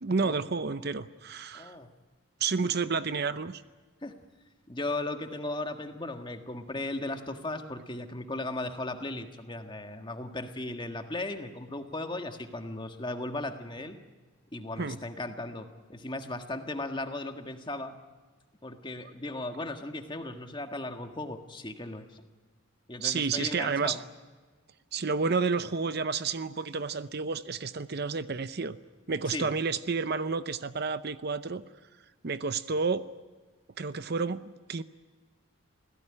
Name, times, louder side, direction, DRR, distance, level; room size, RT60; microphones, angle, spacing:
voice 1, 0.0-1.7 2.4-3.6 14.8-15.0 23.0-24.0 24.9-28.8 29.1-31.6 32.2-33.0 33.8-34.4 34.7-34.8, right 4 dB, 50° right, 13 dB, 0.7 m, -30 dB
voice 2, 1.5-1.9 2.6-2.7 4.0-4.1 4.7-14.0 14.5-17.9 18.6-22.2 22.9-24.0 29.3-29.5, left 2 dB, 20° left, 6 dB, 1.6 m, -36 dB
27.5 x 16.5 x 9.9 m, 1.4 s
head